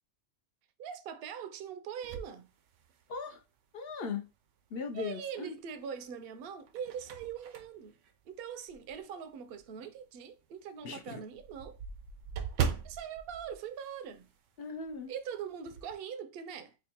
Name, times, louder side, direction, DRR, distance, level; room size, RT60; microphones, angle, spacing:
voice 1, 0.8-2.5 4.9-8.0 8.3-11.8 12.8-14.3 15.1-16.8, right 8 dB, 65° right, 0.7 m, -42 dB
sound 1, 2.0-3.4 3.9-4.0 5.5-6.0 6.5-9.1 9.5-9.7 10.0-10.1 10.4-10.5 10.8-14.6 14.8-15.0 15.4-16.0, right 7 dB, 90° right, 0.9 m, -39 dB
voice 2, 3.1-3.4 3.7-4.3 4.7-5.5 10.8-11.2 14.6-15.1, left 5 dB, 60° left, 0.7 m, -38 dB
5.2 x 2.2 x 2.8 m
omnidirectional pair, 1.2 m